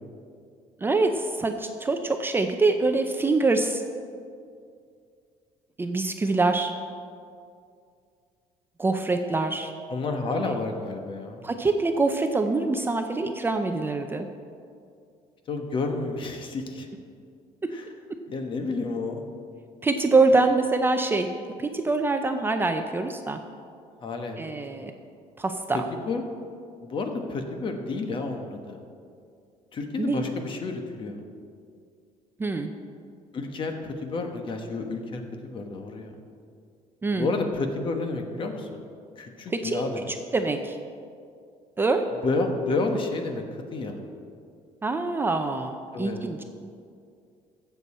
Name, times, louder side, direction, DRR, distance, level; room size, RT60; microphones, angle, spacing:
voice 1, 0.8-3.8 5.8-6.7 8.8-9.7 10.3-10.5 11.4-14.3 19.8-21.3 21.6-23.4 24.4-24.9 25.4-25.8 30.0-30.3 32.4-32.7 37.0-37.3 39.5-40.8 41.8-42.0 44.8-46.4, right 3 dB, 15° right, 6 dB, 0.5 m, -25 dB
voice 2, 9.9-11.4 15.5-16.9 17.7-17.8 18.3-19.2 24.0-24.9 25.7-26.2 26.8-28.8 29.7-31.2 33.3-36.1 37.1-38.8 39.2-40.0 42.2-44.0 45.9-46.2, left 3 dB, 40° left, 5 dB, 1.2 m, -30 dB
15.5 x 7.0 x 4.3 m, 2.3 s
cardioid pair, 130°, 13 cm